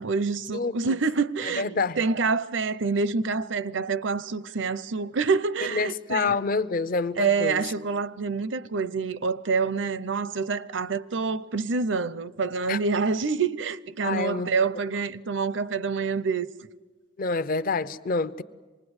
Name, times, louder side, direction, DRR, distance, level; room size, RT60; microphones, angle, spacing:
voice 1, 0.0-6.4 7.2-16.5, right 4 dB, 85° right, 0.7 m, -27 dB
voice 2, 1.6-2.0 5.7-7.6 12.7-12.8 14.0-14.5 17.2-18.4, left 4 dB, 50° left, 0.7 m, -27 dB
26.5 x 20.0 x 8.0 m
head